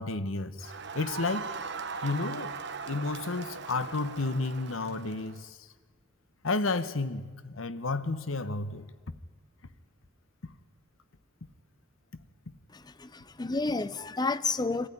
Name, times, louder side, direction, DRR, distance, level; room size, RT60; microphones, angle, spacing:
voice 1, 0.0-1.5 2.0-2.6 2.8-5.7 6.4-8.9 10.4-10.5, left 3 dB, 85° left, 1.1 m, -32 dB
Crowd, 0.6-5.4, right 5 dB, 60° right, 1.3 m, -39 dB
voice 2, 12.7-14.9, left 3 dB, 20° left, 0.6 m, -31 dB
24.0 x 15.0 x 10.0 m
head